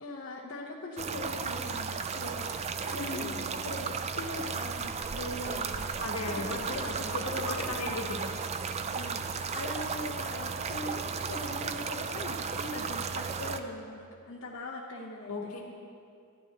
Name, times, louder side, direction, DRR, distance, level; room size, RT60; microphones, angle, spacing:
voice 1, 0.0-7.8 8.9-15.4, left 1 dB, 60° left, -5 dB, 0.9 m, -41 dB
sound 1, 1.0-13.6, right 5 dB, 30° right, 0.4 m, -35 dB
voice 2, 3.0-3.4 6.0-8.3 15.3-15.7, left 2 dB, 75° left, -1 dB, 1.5 m, -36 dB
14.5 x 11.0 x 3.0 m, 2.4 s
head